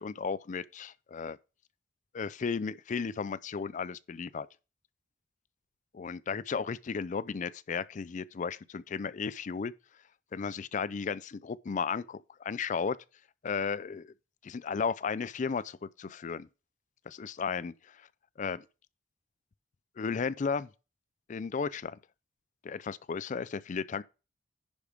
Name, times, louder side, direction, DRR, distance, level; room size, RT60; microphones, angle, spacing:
voice 1, 0.0-1.4 2.1-4.5 5.9-9.7 10.3-13.0 13.4-14.1 14.4-16.5 17.1-18.1 18.4-18.6 20.0-20.7 21.3-22.0 22.6-24.0, left 5 dB, 45° left, 0.4 m, -34 dB
10.5 x 4.9 x 5.1 m
head